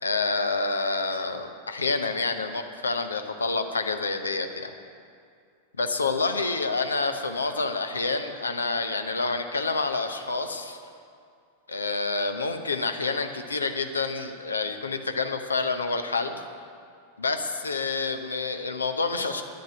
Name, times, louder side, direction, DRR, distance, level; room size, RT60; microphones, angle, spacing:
voice 1, 0.0-4.7 5.8-10.8 11.7-16.4 17.2-19.4, left 3 dB, 75° left, 7 dB, 0.8 m, -28 dB
10.5 x 7.8 x 8.8 m, 2.3 s
figure-of-eight pair, 90°, 0 cm